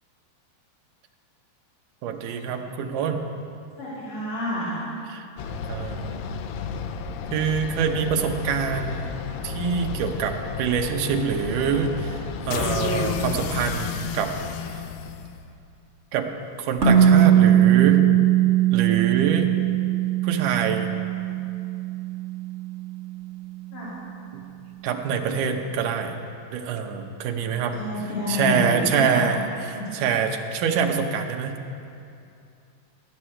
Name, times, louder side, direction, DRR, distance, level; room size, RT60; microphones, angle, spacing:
voice 1, 2.0-3.2 5.1-5.3 5.7-6.2 7.3-9.2 9.4-14.3 16.1-16.3 16.6-18.0 18.7-19.5 20.2-20.9 24.3-24.4 24.8-26.2 26.5-27.8 28.3-31.6, right 6 dB, 75° right, 3 dB, 2.4 m, -25 dB
voice 2, 3.8-4.7 23.7-23.9 27.4-28.8 29.8-30.0, left 3 dB, 65° left, -10 dB, 4.0 m, -29 dB
sound 1, 5.4-15.6, left 6 dB, 85° left, 2.3 m, -31 dB
sound 2, 16.8-23.3, right 10 dB, 45° right, 0.9 m, -20 dB
15.0 x 6.2 x 10.0 m, 2.5 s
omnidirectional pair, 4.0 m